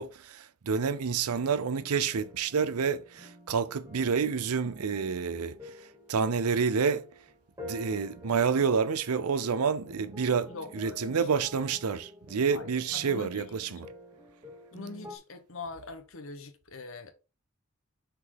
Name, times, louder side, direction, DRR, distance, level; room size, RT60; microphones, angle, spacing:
voice 1, 0.0-5.6 6.1-7.0 7.6-13.8, right 6 dB, 85° right, 0.6 m, -28 dB
sound 1, 1.3-15.2, left 1 dB, 15° right, 1.3 m, -49 dB
voice 2, 10.5-11.3 12.5-13.8 14.7-17.1, left 3 dB, 65° left, 1.1 m, -43 dB
5.8 x 3.8 x 4.7 m
head